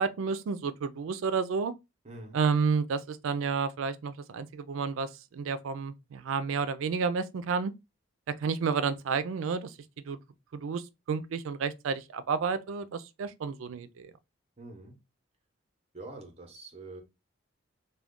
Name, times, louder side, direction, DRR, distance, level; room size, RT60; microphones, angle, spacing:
voice 1, 0.0-1.7 2.3-7.7 8.3-9.7 10.0-10.2 10.5-14.1, right 5 dB, 85° right, 0.4 m, -31 dB
voice 2, 2.0-2.4 14.6-15.0 15.9-17.0, right 2 dB, 30° right, 0.7 m, -45 dB
2.3 x 2.2 x 3.5 m
head